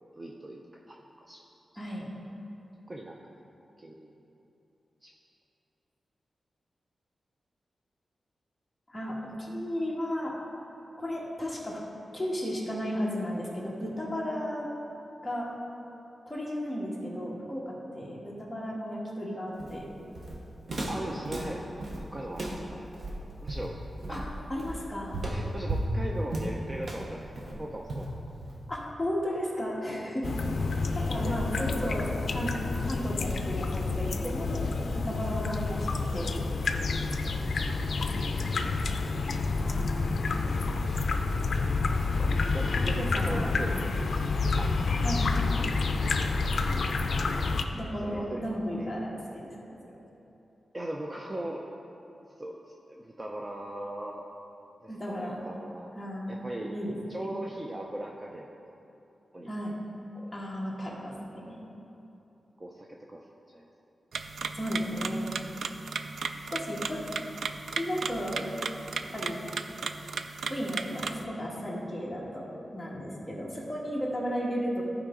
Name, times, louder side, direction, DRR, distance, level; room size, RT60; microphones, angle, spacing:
voice 1, 0.1-1.4 2.9-3.2 3.8-4.2 5.0-5.1 20.9-21.6 22.0-22.9 23.4-23.8 24.1-24.3 25.3-28.1 31.2-31.4 37.5-38.3 42.2-44.2 44.6-45.1 48.0-48.4 48.8-48.9 50.7-52.0 52.4-54.3 54.8-55.9 56.3-56.8 57.1-58.8 59.3-59.5 60.1-60.3 62.6-63.7, right 1 dB, 20° right, -1 dB, 0.5 m, -40 dB
voice 2, 1.8-2.1 8.9-10.3 11.0-11.8 12.1-14.7 15.2-15.5 16.3-19.9 24.1-24.2 24.5-25.2 28.7-30.4 30.7-32.5 32.8-34.6 34.9-36.3 39.6-40.0 42.8-43.6 45.0-45.3 47.7-49.8 54.9-55.4 55.9-56.3 56.7-57.0 59.5-59.7 60.3-61.6 64.5-65.4 66.5-67.0 67.7-68.5 69.1-69.4 70.5-74.8, equal, 5° left, -5 dB, 1.6 m, -34 dB
Walk footsteps, 19.6-28.8, right 1 dB, 45° right, 1.0 m, -35 dB
sound 1, 30.2-47.6, left 3 dB, 60° left, 0.5 m, -29 dB
sound 2, 64.1-71.2, right 5 dB, 80° right, 0.3 m, -36 dB
14.5 x 4.9 x 3.8 m, 3.0 s
wide cardioid pair, 155°, 0 cm